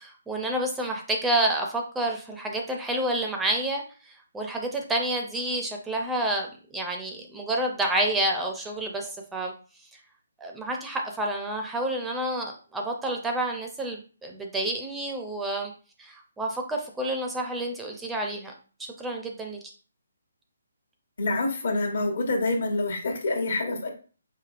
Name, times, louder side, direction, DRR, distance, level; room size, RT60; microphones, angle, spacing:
voice 1, 0.0-9.5 10.4-15.7 16.0-18.5 18.8-19.6, right 1 dB, 5° right, 2 dB, 0.5 m, -29 dB
voice 2, 21.2-23.9, left 2 dB, 65° left, 3 dB, 1.1 m, -26 dB
4.8 x 2.7 x 2.4 m, 0.37 s
hypercardioid pair, 155°, 0 cm